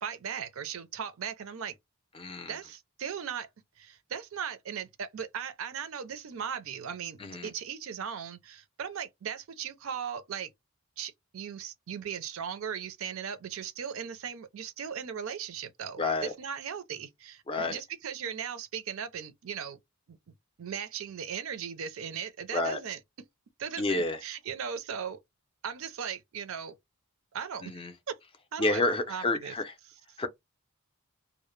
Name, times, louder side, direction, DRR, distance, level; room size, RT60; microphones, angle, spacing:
voice 1, 0.0-1.8 2.5-3.5 3.8-10.5 11.0-19.8 20.1-20.2 20.6-23.0 23.6-25.2 25.6-26.8 27.3-27.8 28.1-28.2 28.5-28.8 29.1-29.5 30.1-30.2, right 7 dB, 70° right, 0.4 m, -38 dB
voice 2, 2.1-2.5 7.2-7.5 16.0-16.3 17.5-17.8 22.5-22.8 23.8-24.2 27.6-27.9 28.6-29.7 30.2-30.3, left 2 dB, 25° left, 0.4 m, -29 dB
2.0 x 2.0 x 3.0 m
head